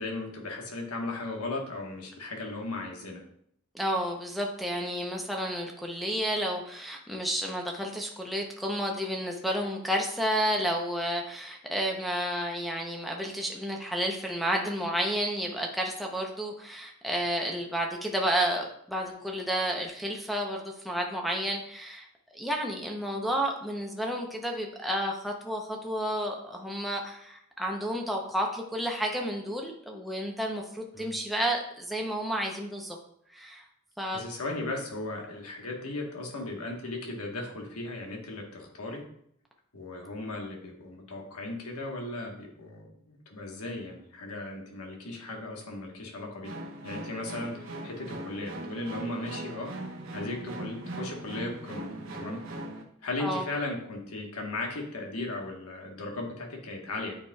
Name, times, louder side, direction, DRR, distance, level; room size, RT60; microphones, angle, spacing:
voice 1, 0.0-3.2 30.9-31.1 34.1-39.0 39.7-46.5 46.8-49.7 50.1-52.4 53.0-57.1, left 2 dB, 85° left, 0 dB, 1.3 m, -36 dB
voice 2, 3.7-22.1 22.3-33.0 33.3-33.6 34.0-34.2 53.2-53.4, equal, ahead, 0 dB, 0.7 m, -31 dB
sound 1, 46.4-52.8, right 1 dB, 65° right, 1.0 m, -40 dB
8.7 x 4.8 x 2.3 m, 0.70 s
head